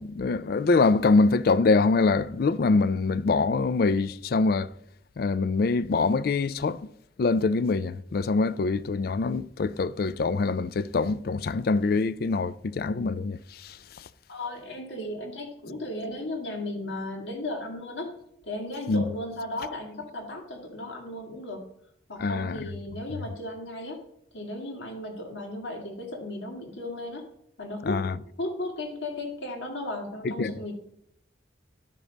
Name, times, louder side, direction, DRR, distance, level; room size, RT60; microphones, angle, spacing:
voice 1, 0.0-4.7 5.2-6.9 7.2-14.0 18.9-19.0 22.2-22.6 27.8-28.2 30.2-30.5, left 3 dB, 55° left, 0.4 m, -24 dB
voice 2, 14.3-18.2 18.4-21.6 22.1-24.0 24.3-27.3 27.6-28.0 28.4-30.7, left 1 dB, 80° left, 2.1 m, -35 dB
11.5 x 5.0 x 5.2 m
head